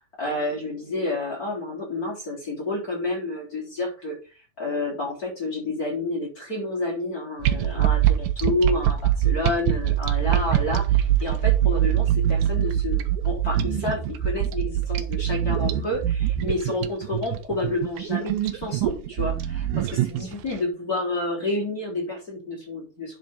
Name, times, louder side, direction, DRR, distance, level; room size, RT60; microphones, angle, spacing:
voice 1, 0.2-23.2, left 2 dB, 25° left, -2 dB, 3.8 m, -29 dB
sound 1, 7.4-20.5, right 12 dB, 75° right, 2.4 m, -23 dB
11.0 x 5.8 x 3.8 m, 0.34 s
omnidirectional pair, 4.3 m